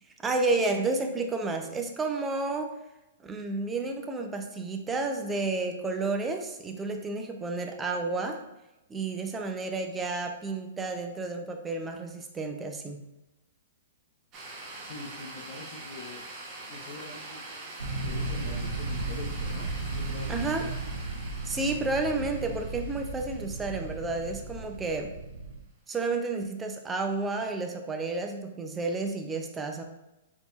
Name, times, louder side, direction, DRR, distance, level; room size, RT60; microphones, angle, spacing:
voice 1, 0.2-2.7 3.2-8.4 8.9-13.0 20.3-20.6 21.4-25.1 25.9-29.8, right 3 dB, 15° right, 4 dB, 0.5 m, -31 dB
sound 1, 14.3-24.6, right 2 dB, 30° right, 0.9 m, -44 dB
voice 2, 14.8-16.2 16.7-17.4 18.0-20.7, left 3 dB, 55° left, -4 dB, 0.7 m, -44 dB
sound 2, 17.8-25.6, right 2 dB, 85° right, 0.6 m, -35 dB
4.1 x 3.5 x 2.4 m, 0.95 s
hypercardioid pair, 130°, 0 cm